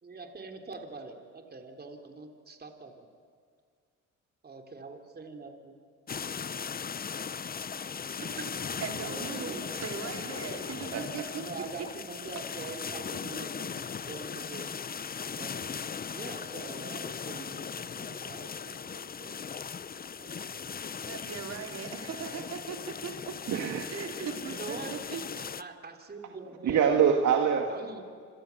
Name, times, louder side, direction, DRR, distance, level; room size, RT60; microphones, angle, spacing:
voice 1, 0.0-3.1 4.4-5.8 8.0-9.7 11.3-14.8 15.4-15.8 16.1-19.3 20.2-20.7 24.5-25.0 25.4-26.9 27.7-28.2, right 3 dB, 30° right, 4 dB, 3.4 m, -44 dB
sound 1, 6.1-25.6, left 6 dB, 30° left, 0.7 m, -38 dB
voice 2, 8.8-11.4 21.0-23.3 23.9-25.2, right 6 dB, 60° right, 3 dB, 4.3 m, -39 dB
voice 3, 10.9-11.3 23.5-23.8 26.6-27.7, right 7 dB, 75° right, 3 dB, 2.1 m, -25 dB
28.0 x 26.0 x 7.2 m, 2.1 s
cardioid pair, 90°, 30 cm